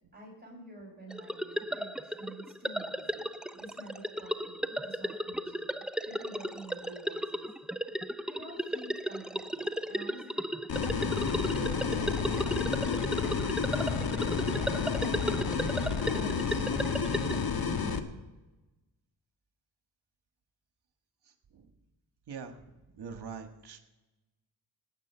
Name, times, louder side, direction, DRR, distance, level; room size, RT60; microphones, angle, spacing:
voice 1, 0.1-5.7 6.0-7.5 8.3-10.6 11.2-13.2 13.9-16.6 17.0-18.1, right 1 dB, 20° right, -1 dB, 4.8 m, -49 dB
sound 1, 1.1-17.5, equal, ahead, 0.5 m, -35 dB
sound 2, 10.7-18.0, left 5 dB, 55° left, 1.4 m, -30 dB
voice 2, 23.0-23.8, right 6 dB, 65° right, 6 dB, 1.7 m, -42 dB
18.5 x 9.2 x 5.7 m, 1.1 s
cardioid pair, 70°, 43 cm